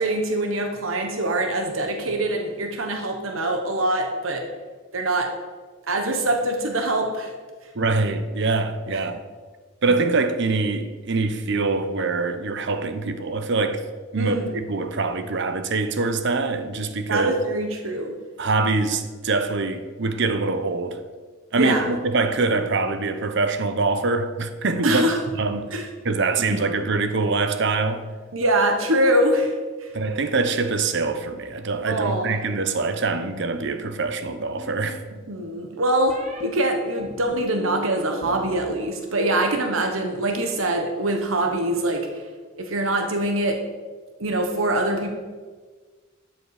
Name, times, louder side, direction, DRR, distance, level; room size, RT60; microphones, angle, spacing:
voice 1, 0.0-4.4 4.9-5.3 5.9-7.3 14.2-14.5 17.1-18.1 21.5-21.9 24.8-25.2 25.7-25.8 26.4-26.8 28.3-29.9 31.9-32.3 35.3-42.2 42.6-43.6 44.2-45.1, right 1 dB, 80° right, 1.2 m, -24 dB
voice 2, 7.7-9.2 9.8-13.8 14.1-17.3 18.4-21.0 21.5-25.0 25.4-25.7 26.0-28.1 29.9-35.0, right 3 dB, 60° right, 0.8 m, -24 dB
sound 1, 34.3-35.1 36.1-36.4 37.0-38.6 38.8-39.4, equal, 35° right, 1.5 m, -40 dB
12.5 x 7.7 x 4.9 m
head